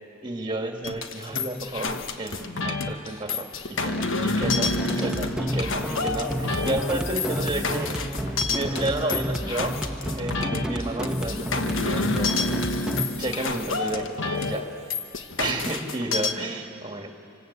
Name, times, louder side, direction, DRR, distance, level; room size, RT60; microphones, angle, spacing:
voice 1, 0.2-7.9 8.5-9.8 10.1-12.3 13.2-14.1 14.4-14.6 15.4-17.1, right 2 dB, 25° right, 3 dB, 2.1 m, -31 dB
sound 1, 0.8-16.3, left 3 dB, 70° left, 1.3 m, -29 dB
sound 2, 4.4-13.1, equal, 5° right, 1.1 m, -30 dB
sound 3, 6.0-9.1 11.1-13.9 14.1-15.2, left 7 dB, 90° left, 1.7 m, -44 dB
28.0 x 26.0 x 8.3 m, 2.8 s
head